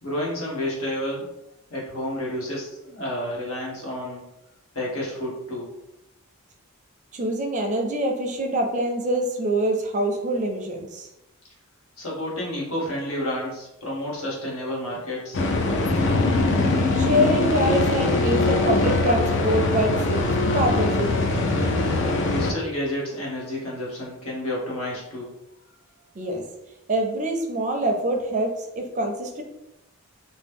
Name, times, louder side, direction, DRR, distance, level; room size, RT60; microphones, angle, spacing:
voice 1, 0.0-1.3 1.7-4.2 4.7-5.7 12.0-15.4 22.2-25.3, left 1 dB, 70° left, -4 dB, 1.1 m, -30 dB
voice 2, 7.1-11.1 17.0-20.2 20.5-21.3 26.2-26.4 26.9-29.4, right 1 dB, 35° right, 3 dB, 0.4 m, -25 dB
sound 1, 15.3-22.5, left 2 dB, 55° left, 0.4 m, -22 dB
2.9 x 2.0 x 3.5 m, 0.89 s
head